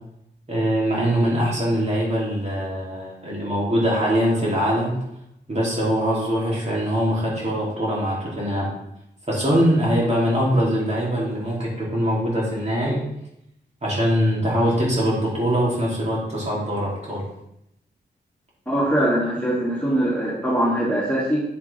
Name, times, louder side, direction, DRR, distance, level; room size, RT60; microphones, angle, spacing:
voice 1, 0.5-4.9 5.5-8.7 9.3-13.0 13.8-17.2, equal, 40° right, -5 dB, 3.0 m, -22 dB
voice 2, 18.7-21.4, right 1 dB, 10° left, -7 dB, 2.4 m, -22 dB
8.0 x 7.2 x 3.4 m, 0.80 s
cardioid pair, 80°, 18 cm